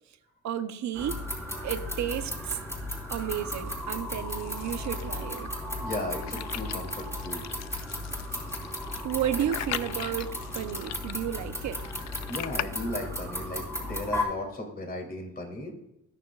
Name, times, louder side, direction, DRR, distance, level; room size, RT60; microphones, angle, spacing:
voice 1, 0.4-1.3 1.6-2.6 3.1-5.5 9.0-11.8, right 10 dB, 70° right, 9 dB, 0.9 m, -32 dB
Junk shop, 1.0-14.2, left 1 dB, 10° left, 3.8 m, -35 dB
sound 1, 3.7-12.7, left 13 dB, 60° left, 0.5 m, -41 dB
voice 2, 5.8-7.4 12.3-15.7, left 1 dB, 30° left, 2 dB, 3.1 m, -36 dB
20.0 x 6.9 x 2.4 m, 0.82 s
cardioid pair, 90°, 30 cm